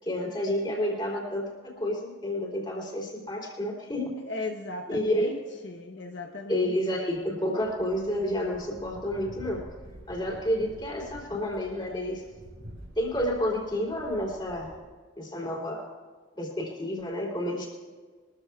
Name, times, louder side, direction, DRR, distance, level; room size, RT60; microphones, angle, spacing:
voice 1, 0.0-4.1 4.9-5.3 6.5-9.6 10.1-12.2 12.9-14.7 15.2-15.9 16.3-17.7, left 1 dB, 25° left, -2 dB, 3.2 m, -30 dB
voice 2, 4.3-5.4 5.6-6.7, left 2 dB, 70° left, 2 dB, 0.9 m, -37 dB
sound 1, 7.6-14.9, equal, 75° right, 4.5 m, -48 dB
22.5 x 14.0 x 2.4 m, 1.5 s
head